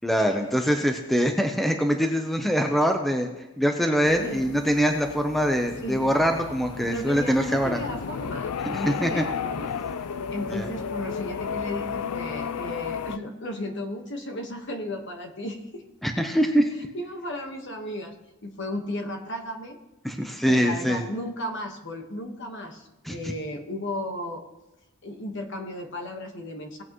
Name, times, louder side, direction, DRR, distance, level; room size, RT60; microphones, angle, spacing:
voice 1, 0.0-3.3 3.6-7.8 8.7-9.2 10.3-10.7 16.0-16.7 20.0-21.0 23.0-23.3, equal, ahead, 4 dB, 0.7 m, -24 dB
sound 1, 4.0-13.2, left 6 dB, 90° left, 0.5 m, -34 dB
voice 2, 6.8-9.7 10.3-15.8 16.9-18.1 18.4-19.8 20.4-24.4 25.0-26.8, left 1 dB, 55° left, 4 dB, 1.4 m, -34 dB
18.0 x 8.5 x 3.1 m, 1.0 s
head